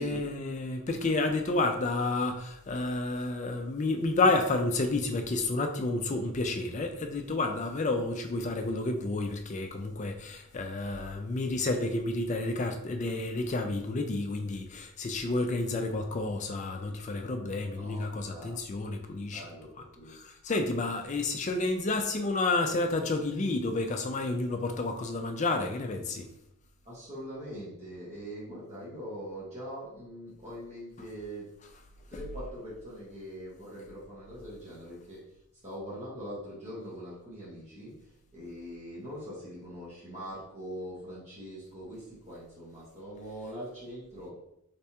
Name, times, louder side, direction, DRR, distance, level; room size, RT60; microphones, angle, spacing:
voice 1, 0.0-19.5 20.1-26.3, left 2 dB, 35° left, 5 dB, 0.3 m, -30 dB
voice 2, 17.8-18.5 19.3-20.1 26.8-31.5 32.1-35.2 35.6-37.9 38.3-44.3, equal, 30° right, -8 dB, 1.3 m, -42 dB
3.3 x 3.3 x 2.8 m, 0.80 s
head